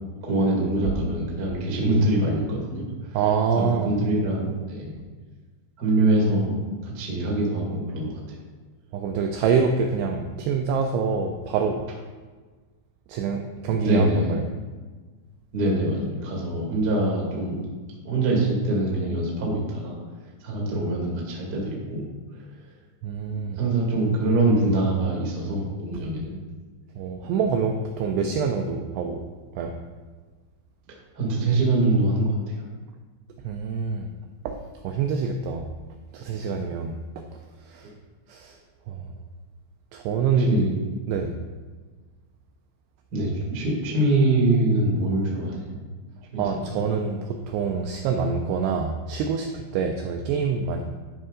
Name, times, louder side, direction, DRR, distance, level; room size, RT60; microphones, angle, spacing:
voice 1, 0.2-3.1 3.6-4.9 5.8-6.6 6.8-8.1 13.8-14.3 15.5-17.7 18.0-20.0 20.4-22.1 23.6-26.4 28.2-28.4 31.1-32.6 40.4-40.7 43.1-45.8 46.3-46.8, right 2 dB, 70° right, -3 dB, 1.0 m, -24 dB
voice 2, 3.1-4.0 8.9-11.8 13.1-14.4 23.0-23.6 27.0-29.2 29.6-29.7 33.4-34.1 34.5-34.6 34.8-35.7 36.1-37.0 37.7-37.9 38.3-38.6 38.9-39.0 39.9-40.5 41.1-41.3 46.4-50.8, right 5 dB, 85° right, 4 dB, 2.4 m, -26 dB
12.5 x 5.3 x 3.7 m, 1.4 s
omnidirectional pair, 5.4 m